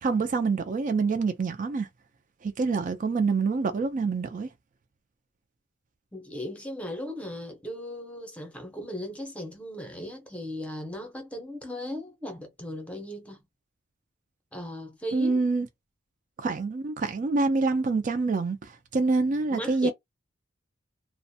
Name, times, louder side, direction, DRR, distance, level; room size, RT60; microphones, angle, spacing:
voice 1, 0.0-1.9 2.4-4.5 15.1-15.7 16.4-19.9, right 4 dB, 40° right, 0.4 m, -26 dB
voice 2, 6.1-13.4 14.5-15.4 19.5-19.9, left 1 dB, 5° left, 0.6 m, -37 dB
2.4 x 2.1 x 2.6 m
head